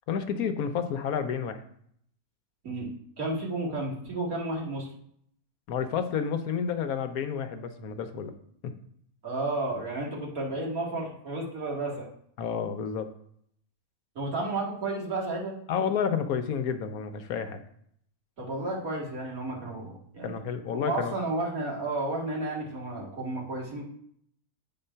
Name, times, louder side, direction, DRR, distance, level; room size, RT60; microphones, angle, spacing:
voice 1, 0.1-1.6 5.7-8.3 8.6-8.7 12.4-13.1 15.7-17.6 20.2-21.1, left 7 dB, 75° left, 8 dB, 1.2 m, -30 dB
voice 2, 3.2-4.9 9.2-12.1 14.2-15.6 18.4-20.4 20.7-23.8, right 2 dB, 65° right, -3 dB, 2.3 m, -32 dB
8.9 x 3.9 x 5.5 m, 0.67 s
omnidirectional pair, 1.6 m